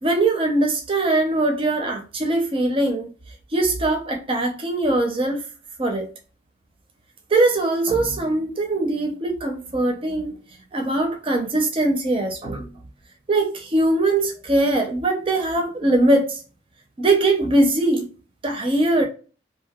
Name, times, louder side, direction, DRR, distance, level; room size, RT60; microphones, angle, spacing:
voice 1, 0.0-3.1 3.5-5.4 5.8-6.1 7.3-10.3 10.7-12.7 13.3-16.4 17.0-18.1 18.4-19.1, right 2 dB, 25° right, 0.5 m, -21 dB
2.8 x 2.1 x 2.2 m
head